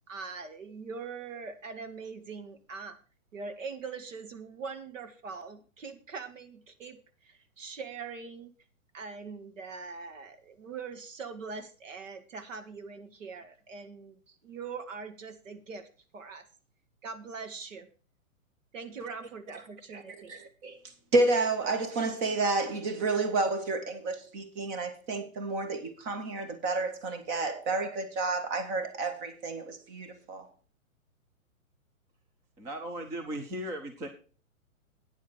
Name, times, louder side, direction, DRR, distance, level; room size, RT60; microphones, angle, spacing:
voice 1, 0.1-3.0 3.3-8.5 8.9-15.9 16.1-16.4 17.0-17.9 18.7-20.3, right 5 dB, 65° right, 2.0 m, -42 dB
voice 2, 20.3-20.8 21.1-30.5, right 3 dB, 30° right, 2.1 m, -30 dB
voice 3, 32.6-34.1, right 1 dB, 5° right, 0.5 m, -37 dB
9.4 x 8.4 x 6.3 m
hypercardioid pair, 125°, 41 cm